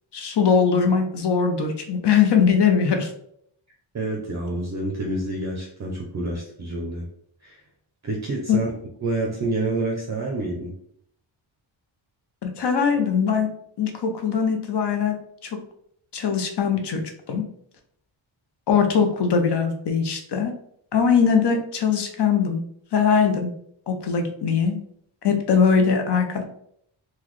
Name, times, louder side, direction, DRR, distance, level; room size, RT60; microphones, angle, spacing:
voice 1, 0.1-3.1 8.5-8.6 12.4-13.5 13.8-15.5 16.1-17.0 17.3-17.4 18.7-20.5 20.9-22.6 22.9-23.5 23.9-24.8 25.2-26.4, left 6 dB, 55° left, 5 dB, 0.6 m, -21 dB
voice 2, 3.9-7.1 7.4-7.6 8.0-8.8 9.0-10.7, right 2 dB, 35° right, 0 dB, 0.5 m, -28 dB
3.8 x 2.2 x 3.0 m, 0.68 s
wide cardioid pair, 155°, 49 cm